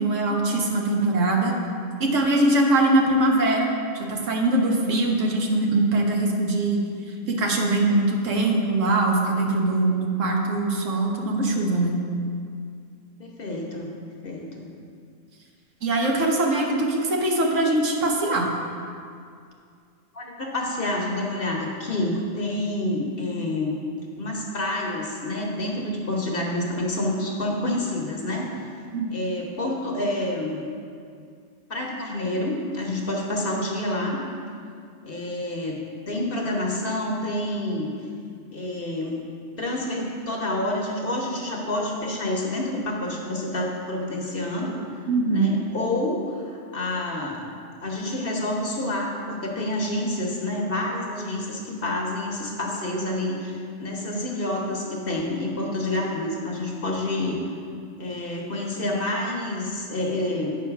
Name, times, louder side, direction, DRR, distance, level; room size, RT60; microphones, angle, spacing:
voice 1, 0.0-1.5 2.0-3.7 3.9-6.8 7.3-12.0 15.8-18.5 28.9-29.1 45.1-45.5, right 2 dB, 70° right, 0 dB, 1.3 m, -22 dB
voice 2, 13.2-13.9 14.2-14.7 20.1-23.8 24.2-28.5 29.1-30.6 31.7-34.2 35.0-35.8 36.1-37.9 38.5-39.2 39.6-44.7 45.3-47.4 47.8-57.4 58.0-60.6, left 1 dB, 45° left, -1 dB, 1.1 m, -28 dB
8.4 x 4.8 x 5.8 m, 2.3 s
omnidirectional pair, 1.4 m